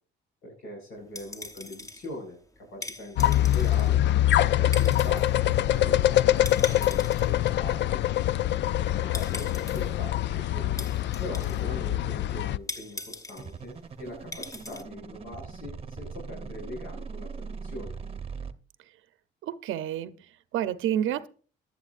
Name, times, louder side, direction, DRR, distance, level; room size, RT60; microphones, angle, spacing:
voice 1, 0.4-2.4 2.7-4.0 4.6-8.0 9.1-10.9 11.2-17.9, left 1 dB, 90° left, 7.2 m, -42 dB
sound 1, 1.0-14.8, left 2 dB, 15° left, 1.0 m, -42 dB
sound 2, 3.2-12.6, left 13 dB, 65° left, 0.4 m, -24 dB
sound 3, 13.4-18.5, right 5 dB, 30° right, 0.9 m, -40 dB
voice 2, 19.4-21.3, right 11 dB, 85° right, 0.7 m, -30 dB
15.5 x 11.5 x 2.5 m
cardioid pair, 90°, 20 cm